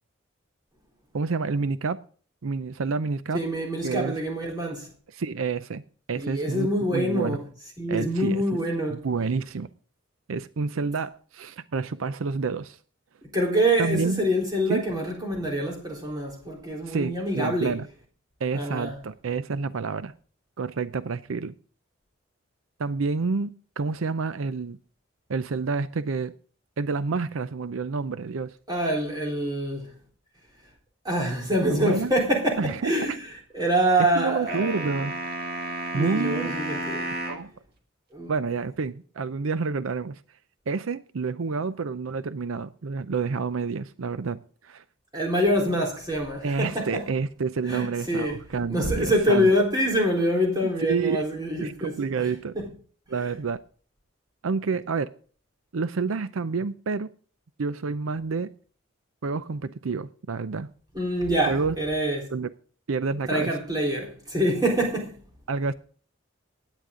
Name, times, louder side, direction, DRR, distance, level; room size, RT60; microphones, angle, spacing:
voice 1, 1.1-2.0 2.4-3.4 3.8-4.1 5.1-5.8 6.1-7.4 7.9-8.4 8.9-9.7 10.3-12.8 13.8-14.2 14.7-14.8 16.9-17.9 18.4-20.1 20.6-21.5 22.8-23.5 23.8-24.8 25.3-26.3 26.8-28.5 31.7-32.1 32.6-32.9 34.1-35.1 35.9-36.6 37.2-37.5 38.3-40.2 40.7-44.8 46.4-49.5 50.8-51.2 51.6-52.5 53.1-53.6 54.4-55.1 55.7-57.1 57.6-58.5 59.2-60.7 61.5-61.8 62.3-62.5 62.9-63.5 65.5-65.7, right 4 dB, 85° right, 0.5 m, -28 dB
voice 2, 3.3-4.9 6.1-7.4 7.8-9.0 13.3-17.7 18.5-19.0 28.7-29.9 31.0-33.2 33.5-34.9 35.9-37.1 38.1-38.3 45.1-47.0 47.7-48.4 48.7-51.9 52.2-52.7 60.9-62.3 63.3-65.2, equal, 20° right, 3.9 m, -25 dB
sound 1, 34.5-37.5, right 2 dB, 45° right, 2.1 m, -32 dB
16.5 x 10.0 x 3.8 m
head